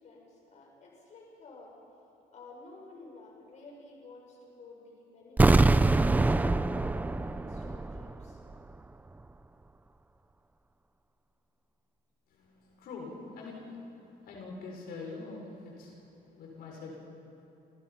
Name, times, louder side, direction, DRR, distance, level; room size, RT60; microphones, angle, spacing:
voice 1, 0.0-1.7 2.3-5.6 6.1-8.4, left 3 dB, 45° left, -1 dB, 6.8 m, -51 dB
sound 1, 5.4-8.3 8.5-8.6, right 2 dB, 10° right, 0.6 m, -24 dB
voice 2, 12.3-16.0 16.3-17.0, left 3 dB, 70° left, -1 dB, 6.2 m, -44 dB
29.5 x 29.5 x 5.9 m, 2.8 s
cardioid pair, 160°, 16 cm